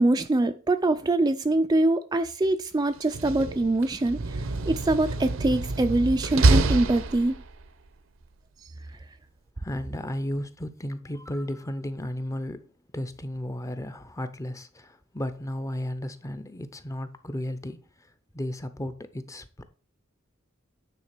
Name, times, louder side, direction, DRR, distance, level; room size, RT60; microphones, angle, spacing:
voice 1, 0.0-7.4, right 2 dB, 20° right, 0.4 m, -24 dB
Slam, 3.0-7.7, right 2 dB, 70° right, 0.7 m, -26 dB
voice 2, 9.6-19.6, left 1 dB, 15° left, 0.7 m, -34 dB
9.4 x 3.8 x 5.9 m
head